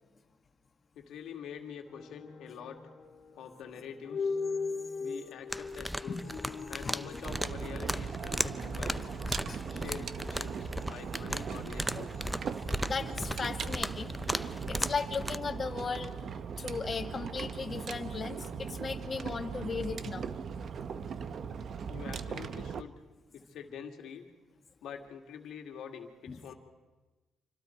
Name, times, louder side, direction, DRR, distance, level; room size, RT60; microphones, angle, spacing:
voice 1, 0.9-2.8 3.4-4.4 5.0-6.2 6.7-9.1 9.7-12.2 21.8-23.0 23.3-24.3 24.8-26.5, left 7 dB, 80° left, 4 dB, 2.3 m, -46 dB
sound 1, 1.9-11.9, left 4 dB, 55° left, 2.5 m, -41 dB
sound 2, 5.5-15.4, equal, 5° right, 0.6 m, -37 dB
sound 3, 7.2-22.8, right 6 dB, 55° right, 0.9 m, -39 dB
voice 2, 12.4-16.2 16.6-20.3 21.3-21.4 26.3-26.4, left 5 dB, 40° left, 6 dB, 1.8 m, -37 dB
27.5 x 25.0 x 4.6 m, 1.2 s
cardioid pair, 90°, 0 cm